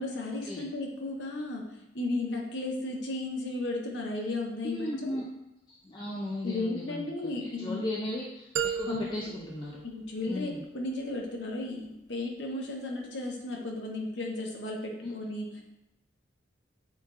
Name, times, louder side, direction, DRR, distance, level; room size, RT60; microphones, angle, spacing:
voice 1, 0.0-1.6 1.9-5.2 6.4-7.9 8.9-9.1 9.8-15.5, left 2 dB, 75° left, 1 dB, 0.8 m, -34 dB
voice 2, 4.6-5.2 5.7-9.8 10.3-10.6 15.0-15.1, left 1 dB, 25° left, -3 dB, 0.4 m, -36 dB
sound 1, 8.6-10.6, right 7 dB, 75° right, 0.3 m, -35 dB
7.0 x 2.4 x 2.4 m, 0.90 s
head